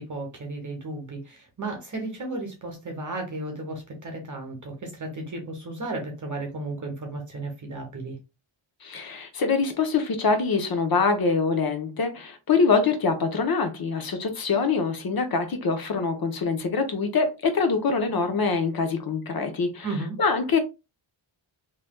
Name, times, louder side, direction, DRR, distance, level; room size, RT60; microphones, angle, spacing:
voice 1, 0.0-8.2 19.8-20.2, right 2 dB, 40° right, 0.9 m, -34 dB
voice 2, 8.8-19.9 20.2-20.6, left 4 dB, 45° left, 0.8 m, -24 dB
3.1 x 2.9 x 2.2 m
wide cardioid pair, 125°, 49 cm